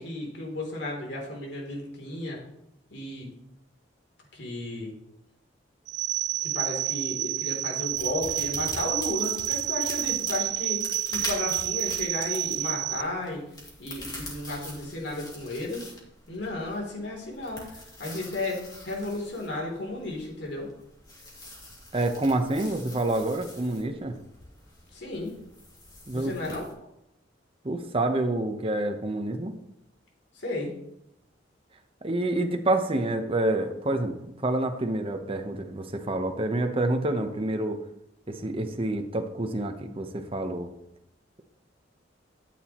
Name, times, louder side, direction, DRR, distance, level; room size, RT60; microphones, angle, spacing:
voice 1, 0.0-2.4 2.9-3.3 4.3-4.9 6.4-13.4 13.8-15.9 16.3-20.7 24.9-25.3 26.1-26.7 30.3-30.7, left 2 dB, 65° left, -1 dB, 3.2 m, -34 dB
sound 1, 5.9-13.0, right 15 dB, 65° right, 0.3 m, -29 dB
sound 2, 7.9-26.7, left 1 dB, 25° left, 2.5 m, -44 dB
voice 2, 21.9-24.2 26.1-26.3 27.6-29.6 32.0-37.8 38.3-40.7, right 2 dB, 30° right, 5 dB, 1.0 m, -28 dB
12.5 x 9.2 x 3.0 m, 0.80 s
head